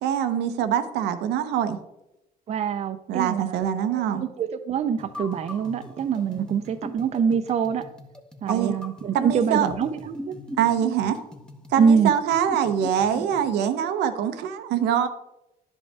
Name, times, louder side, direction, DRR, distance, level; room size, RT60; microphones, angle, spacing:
voice 1, 0.0-1.8 3.1-4.3 6.3-6.5 8.5-8.7 9.1-9.7 10.6-11.2 11.7-15.1, right 9 dB, 80° right, 9 dB, 0.7 m, -24 dB
voice 2, 2.5-7.8 8.4-10.3 11.8-12.1, right 7 dB, 40° right, 10 dB, 0.5 m, -25 dB
sound 1, 5.0-13.5, left 1 dB, 5° left, 0.7 m, -40 dB
10.5 x 5.4 x 3.3 m, 0.91 s
cardioid pair, 110°, 17 cm